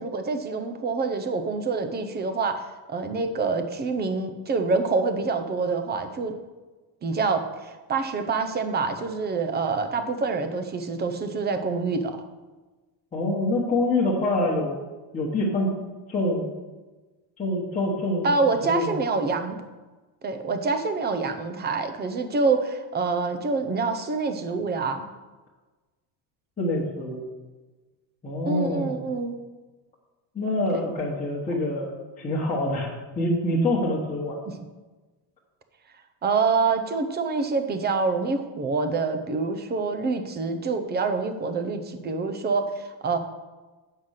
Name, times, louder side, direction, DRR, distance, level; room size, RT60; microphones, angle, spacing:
voice 1, 0.0-6.4 7.0-12.2 18.2-19.6 20.2-25.1 28.4-29.4 30.7-30.8 34.5-34.6 36.2-43.2, right 4 dB, 20° right, 7 dB, 0.5 m, -26 dB
voice 2, 13.1-14.8 15.1-15.7 16.1-16.5 17.4-18.3 18.6-19.0 26.6-27.3 28.2-29.0 30.3-32.9 33.2-34.4, left 1 dB, 15° left, -6 dB, 1.3 m, -26 dB
7.8 x 5.7 x 6.4 m, 1.2 s
cardioid pair, 170°, 49 cm